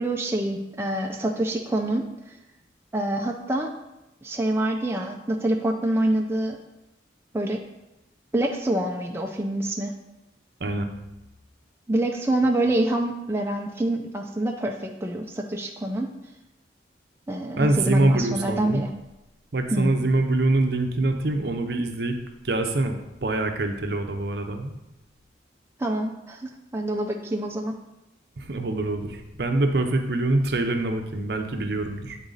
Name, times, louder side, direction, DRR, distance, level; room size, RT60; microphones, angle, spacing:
voice 1, 0.0-2.4 2.9-3.7 4.2-6.6 7.3-7.6 8.3-9.9 11.9-16.1 17.3-18.9 19.7-20.0 25.8-27.7, right 1 dB, 15° right, 1 dB, 0.4 m, -26 dB
voice 2, 17.6-18.8 19.5-22.2 22.4-24.7 28.4-32.2, right 2 dB, 60° right, 5 dB, 0.7 m, -24 dB
9.4 x 4.0 x 3.9 m, 0.96 s
head